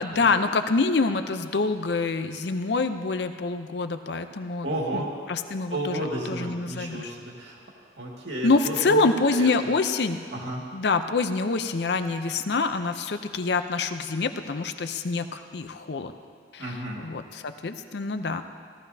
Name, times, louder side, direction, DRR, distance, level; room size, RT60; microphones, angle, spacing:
voice 1, 0.0-5.0 5.3-7.1 8.4-10.2 10.7-16.1 16.5-18.4, left 3 dB, 65° left, 9 dB, 0.6 m, -26 dB
voice 2, 4.6-5.1 5.7-7.6 8.0-9.5 10.3-10.6 16.6-17.0, right 1 dB, 75° right, -2 dB, 2.0 m, -32 dB
17.5 x 14.0 x 2.7 m, 2.1 s
head